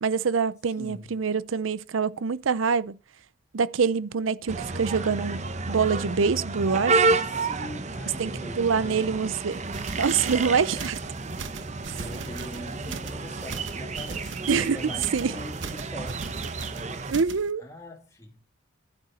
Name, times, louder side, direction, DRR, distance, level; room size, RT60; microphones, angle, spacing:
voice 1, 0.0-3.0 3.5-7.2 8.2-9.6 10.0-11.0 14.5-14.8 15.1-15.3 17.1-17.6, right 5 dB, 90° right, 0.6 m, -25 dB
voice 2, 0.8-1.1 7.3-9.2 10.8-10.9 11.7-17.2 17.6-18.4, equal, 15° left, 2.4 m, -42 dB
sound 1, 4.5-17.1, right 3 dB, 35° right, 0.8 m, -30 dB
sound 2, 9.5-17.5, right 4 dB, 70° right, 1.0 m, -40 dB
11.5 x 10.5 x 4.2 m
head